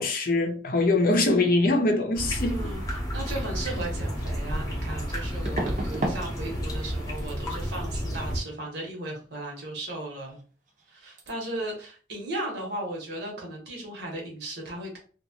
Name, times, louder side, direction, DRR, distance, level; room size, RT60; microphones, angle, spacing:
voice 1, 0.0-2.7, left 2 dB, 55° left, 0.6 m, -23 dB
sound 1, 2.1-8.4, equal, 20° left, 0.8 m, -31 dB
voice 2, 2.5-10.4 10.9-15.0, right 1 dB, 65° right, 1.1 m, -36 dB
sound 2, 3.9-4.0 5.4-6.2 6.5-6.9 7.2-7.4 10.3-10.4 10.7-10.9 11.2-11.3, right 1 dB, 45° right, 0.7 m, -32 dB
2.8 x 2.4 x 2.8 m
head